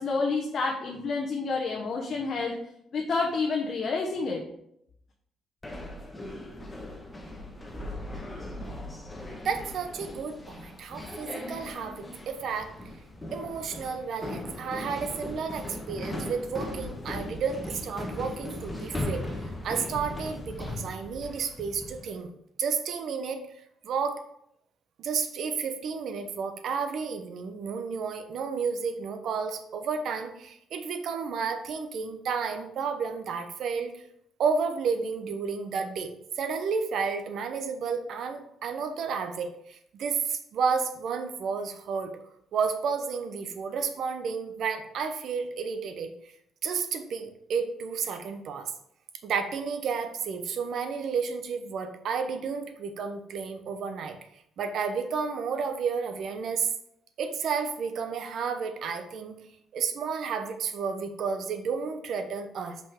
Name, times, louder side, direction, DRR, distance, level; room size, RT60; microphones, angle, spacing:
voice 1, 0.0-2.6 2.9-4.5, left 4 dB, 55° left, 1 dB, 0.9 m, -29 dB
sound 1, 5.6-22.1, left 1 dB, 15° left, 1.2 m, -38 dB
voice 2, 9.4-12.7 13.3-19.2 19.6-22.3 22.6-23.4 23.8-24.2 25.0-34.0 34.4-42.1 42.5-46.1 46.6-48.7 49.2-54.2 54.6-56.7 57.2-59.4 59.7-62.8, right 5 dB, 70° right, 8 dB, 0.8 m, -31 dB
5.4 x 5.2 x 3.6 m, 0.74 s
cardioid pair, 90°, 0 cm